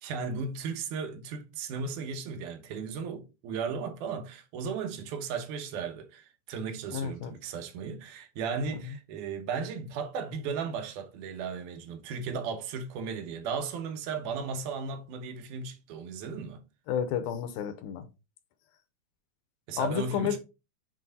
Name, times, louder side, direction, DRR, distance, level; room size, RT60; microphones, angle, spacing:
voice 1, 0.0-16.6 19.7-20.4, right 5 dB, 70° right, 2.2 m, -35 dB
voice 2, 6.9-7.3 8.7-8.8 16.9-18.1 19.8-20.4, left 8 dB, 80° left, 2.5 m, -31 dB
7.6 x 3.1 x 4.0 m
omnidirectional pair, 4.4 m